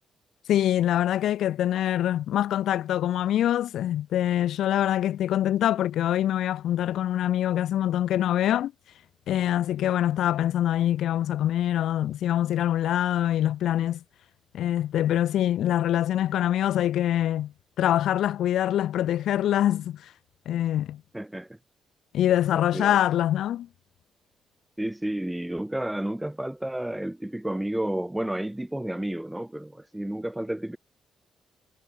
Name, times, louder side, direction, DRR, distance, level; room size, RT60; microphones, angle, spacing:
voice 1, 0.5-8.7 9.3-14.0 14.5-20.0 20.5-21.0 22.1-23.7, left 12 dB, 75° left, 2.6 m, -24 dB
voice 2, 21.1-21.5 22.5-23.0 24.8-30.8, right 1 dB, 5° right, 6.1 m, -31 dB
cardioid pair, 90°, 0 cm